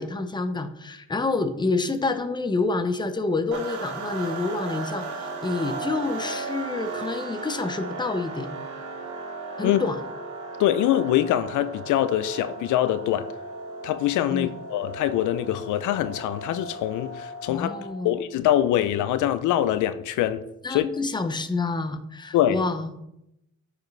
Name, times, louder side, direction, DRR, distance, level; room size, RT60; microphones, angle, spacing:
voice 1, 0.0-8.5 9.6-10.0 14.3-14.5 17.5-18.1 20.6-23.0, left 3 dB, 15° left, 0.7 m, -28 dB
sound 1, 3.5-18.1, right 3 dB, 75° right, 1.1 m, -36 dB
voice 2, 10.6-13.3 13.8-17.7 18.0-20.4 20.7-20.9 22.3-22.6, left 12 dB, 80° left, 0.5 m, -24 dB
8.9 x 4.9 x 3.2 m
cardioid pair, 90°, 30 cm